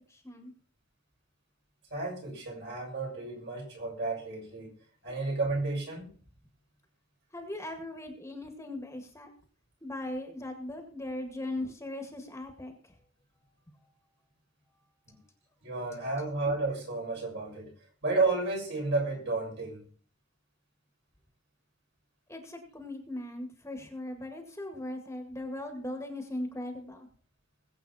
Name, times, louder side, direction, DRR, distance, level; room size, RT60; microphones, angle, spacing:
voice 1, 0.1-0.5 5.1-5.2 7.3-9.3 9.8-13.0 13.8-13.9 22.3-27.1, left 1 dB, 15° left, 4 dB, 1.9 m, -39 dB
voice 2, 1.9-4.7 5.0-6.1 15.6-17.7 18.0-19.8, right 3 dB, 60° right, -2 dB, 6.5 m, -32 dB
21.0 x 8.1 x 4.2 m, 0.42 s
head